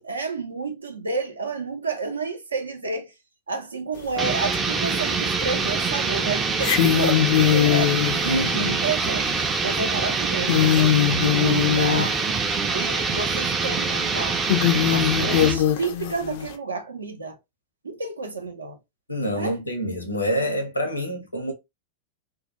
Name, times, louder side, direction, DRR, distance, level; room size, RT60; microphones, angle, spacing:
voice 1, 0.0-3.1 3.5-12.2 12.7-14.5 14.9-17.4 17.8-18.8 19.3-19.6, right 4 dB, 75° right, 0.5 m, -30 dB
sound 1, 4.0-4.1 4.5-5.3 5.6-5.7 6.5-12.9 13.1-13.2 13.9-14.0 14.5-16.5, left 11 dB, 50° left, 0.3 m, -22 dB
sound 2, 4.2-15.6, right 4 dB, 20° right, 0.4 m, -25 dB
voice 2, 8.2-8.8 19.1-21.5, equal, 85° left, 0.7 m, -26 dB
2.3 x 2.2 x 2.8 m
figure-of-eight pair, 90°, 0 cm